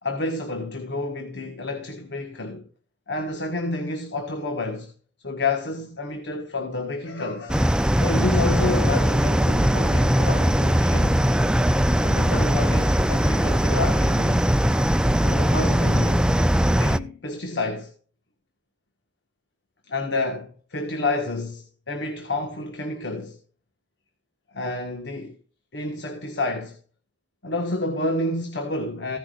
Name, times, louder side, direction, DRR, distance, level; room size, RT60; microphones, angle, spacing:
voice 1, 0.0-2.7 3.1-4.9 5.2-11.3 12.0-14.5 15.2-16.3 16.8-17.9 19.9-23.4 24.5-25.3 25.7-26.8 27.4-29.2, left 2 dB, 85° left, 1.6 m, -29 dB
sound 1, 7.5-17.0, equal, 5° right, 0.4 m, -20 dB
16.0 x 10.5 x 2.5 m
head